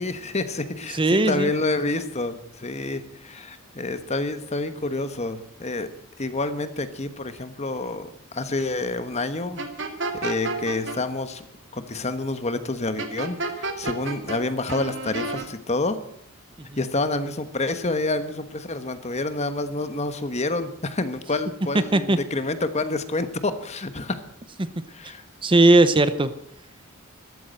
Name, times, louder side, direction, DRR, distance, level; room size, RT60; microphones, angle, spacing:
voice 1, 0.0-5.9 6.2-9.7 10.2-11.4 11.7-16.0 16.8-24.2 24.9-25.2, left 2 dB, 35° left, 11 dB, 1.2 m, -28 dB
voice 2, 0.9-1.5 21.9-22.2 25.4-26.3, right 2 dB, 25° right, 12 dB, 0.8 m, -17 dB
sound 1, 9.6-11.0 13.0-14.4 14.7-15.5, right 3 dB, 60° right, 2.3 m, -30 dB
13.5 x 12.5 x 7.7 m, 0.70 s
head